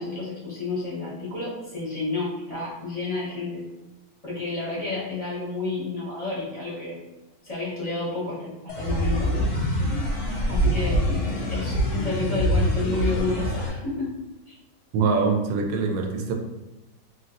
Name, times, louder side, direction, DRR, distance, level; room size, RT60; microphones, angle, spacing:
voice 1, 0.0-3.6 4.2-7.0 7.4-9.3 10.5-11.3 11.5-14.1 14.5-14.6, left 3 dB, 25° left, -9 dB, 0.8 m, -30 dB
sound 1, 8.7-13.7, equal, 60° left, 0.9 m, -24 dB
voice 2, 14.9-16.3, right 4 dB, 75° right, 3 dB, 1.2 m, -23 dB
3.2 x 2.7 x 2.5 m, 1.0 s
omnidirectional pair, 2.2 m